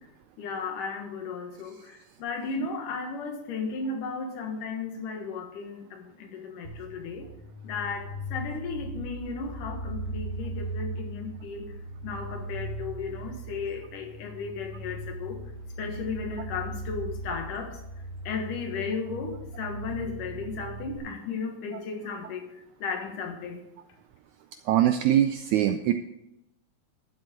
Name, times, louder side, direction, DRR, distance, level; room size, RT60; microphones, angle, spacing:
voice 1, 0.4-7.3 7.6-11.8 12.0-15.4 15.8-17.8 18.2-23.6, left 5 dB, 70° left, 4 dB, 2.9 m, -35 dB
sound 1, 6.6-21.0, right 1 dB, 60° right, 3.0 m, -38 dB
voice 2, 24.7-25.9, right 11 dB, 80° right, 8 dB, 1.7 m, -22 dB
12.5 x 7.6 x 5.1 m, 0.87 s
omnidirectional pair, 3.9 m